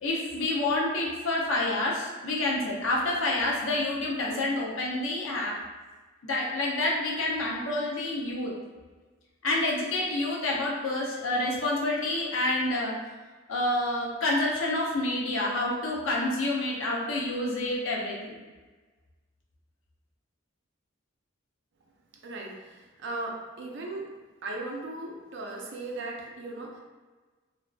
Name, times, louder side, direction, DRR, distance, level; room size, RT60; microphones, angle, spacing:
voice 1, 0.0-5.6 6.2-8.5 9.4-12.9 13.5-18.4, left 2 dB, 75° left, -3 dB, 0.6 m, -28 dB
voice 2, 22.2-24.0 24.4-26.8, right 2 dB, 60° right, 0 dB, 0.5 m, -37 dB
2.5 x 2.4 x 2.3 m, 1.3 s
head